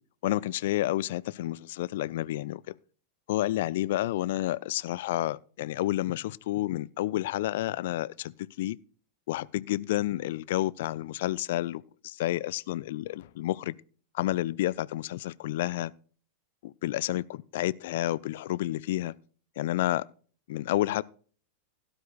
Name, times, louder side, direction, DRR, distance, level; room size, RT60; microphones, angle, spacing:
voice 1, 0.2-2.6 3.3-8.8 9.3-13.8 14.1-15.9 16.6-19.1 19.6-20.0 20.5-21.0, left 15 dB, 55° left, 0.4 m, -30 dB
17.0 x 11.5 x 2.3 m
figure-of-eight pair, 90°, 0 cm